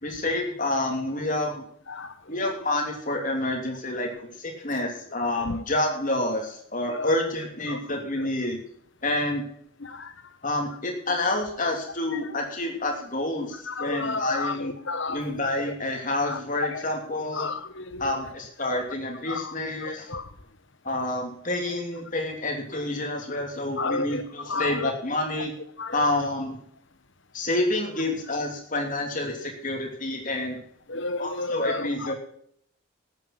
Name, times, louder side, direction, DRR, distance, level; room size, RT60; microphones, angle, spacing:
voice 1, 0.0-1.6 2.3-8.6 9.0-9.4 10.4-14.7 15.1-17.5 18.0-20.1 20.8-25.5 25.9-26.6 27.3-30.6 31.2-32.1, left 1 dB, 35° left, 3.0 m, -28 dB
voice 2, 9.8-10.1 13.7-15.4 16.2-16.8 17.3-18.1 19.3-19.5 19.8-20.3 23.8-24.9 25.8-26.1 30.9-32.1, left 3 dB, 55° left, 1.1 m, -32 dB
13.0 x 9.2 x 6.0 m
head